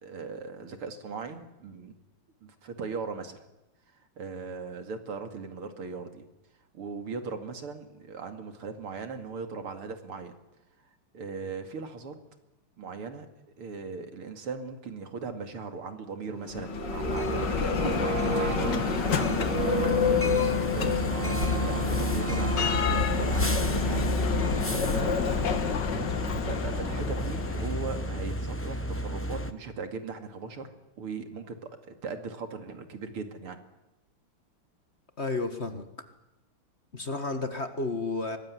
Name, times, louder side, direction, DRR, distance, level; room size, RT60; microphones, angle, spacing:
voice 1, 0.0-2.0 2.4-3.4 3.9-6.3 6.7-10.3 11.1-12.2 12.8-13.3 13.6-25.5 26.4-30.7 31.0-33.6, right 4 dB, 80° right, 7 dB, 3.2 m, -39 dB
sound 1, 16.3-25.1, right 2 dB, 40° right, 0.7 m, -34 dB
Bell, 16.4-28.3, left 6 dB, 55° left, 2.0 m, -29 dB
sound 2, 17.0-29.5, equal, 10° left, 0.6 m, -32 dB
voice 2, 35.2-35.9 36.9-38.4, left 3 dB, 30° left, 8 dB, 1.8 m, -31 dB
24.0 x 20.0 x 9.8 m, 0.95 s
omnidirectional pair, 2.4 m